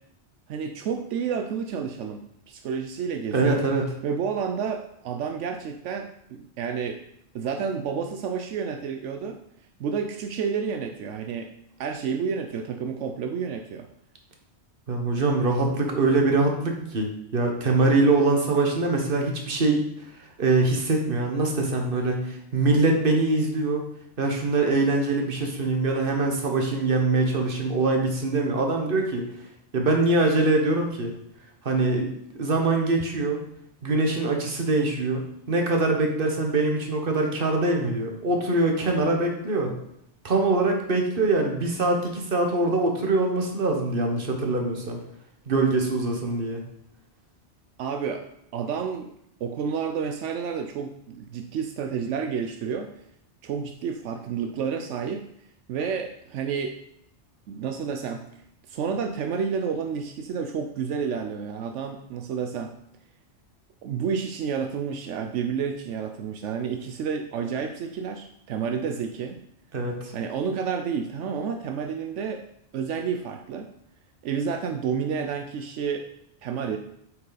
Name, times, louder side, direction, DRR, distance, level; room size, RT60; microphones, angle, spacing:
voice 1, 0.5-2.2 2.5-3.6 4.0-7.0 7.3-9.4 9.8-11.5 11.8-13.9 47.8-48.2 48.5-49.1 49.4-52.9 53.4-55.3 55.7-56.8 57.5-58.3 58.7-62.7 63.8-69.4 70.1-72.4 72.7-73.7 74.2-76.0 76.4-76.8, right 6 dB, 85° right, 5 dB, 0.9 m, -30 dB
voice 2, 3.3-3.9 14.9-19.8 20.4-23.8 24.2-29.2 29.7-31.1 31.6-33.4 33.8-39.7 40.2-45.0 45.5-46.6 69.7-70.1, right 2 dB, 50° right, 2 dB, 1.4 m, -23 dB
7.9 x 5.8 x 4.0 m, 0.74 s
omnidirectional pair, 1.2 m